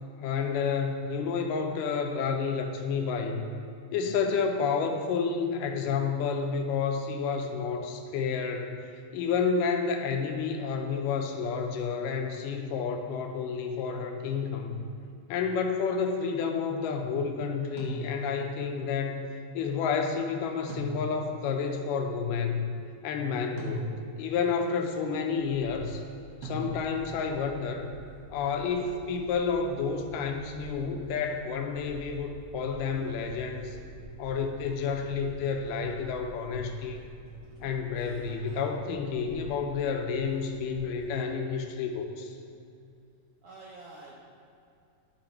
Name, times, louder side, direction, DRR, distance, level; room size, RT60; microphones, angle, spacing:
voice 1, 0.2-3.5 3.9-8.8 9.1-14.8 15.3-22.7 23.0-26.0 26.4-27.9 28.3-33.8 34.2-37.0 37.6-42.4, left 5 dB, 85° left, 4 dB, 2.3 m, -30 dB
sound 1, 17.8-18.5 20.7-21.5 23.6-24.3 26.4-27.2, equal, 60° right, 1.8 m, -38 dB
sound 2, 25.3-41.1, equal, 30° right, 1.8 m, -50 dB
voice 2, 37.4-37.8 43.4-44.1, right 3 dB, 75° right, -5 dB, 1.4 m, -48 dB
11.5 x 3.9 x 4.3 m, 2.6 s
omnidirectional pair, 3.8 m